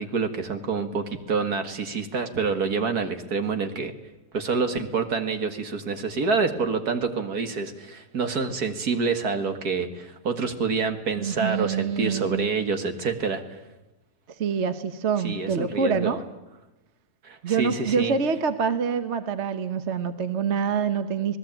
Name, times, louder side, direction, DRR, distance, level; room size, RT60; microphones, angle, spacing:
voice 1, 0.0-3.9 4.3-13.4 15.2-16.2 17.2-18.1, right 4 dB, 65° right, 7 dB, 2.3 m, -27 dB
voice 2, 11.2-12.5 14.4-16.2 17.4-21.4, right 6 dB, 45° right, 10 dB, 1.3 m, -26 dB
27.0 x 19.5 x 9.0 m, 0.98 s
omnidirectional pair, 1.8 m